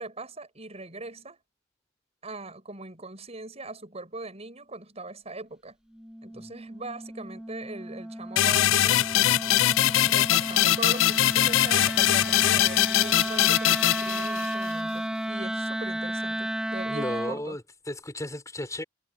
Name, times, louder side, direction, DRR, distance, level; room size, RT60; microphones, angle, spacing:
voice 1, 0.0-1.4 2.2-5.8 6.2-9.1 9.4-9.6 10.1-17.6, right 2 dB, 35° right, 6.2 m, -40 dB
Wind instrument woodwind instrument, 5.9-17.4, right 1 dB, 5° right, 0.7 m, -33 dB
sound 1, 8.4-14.7, left 13 dB, 80° left, 0.4 m, -22 dB
voice 2, 16.9-18.8, left 1 dB, 15° left, 6.6 m, -34 dB
head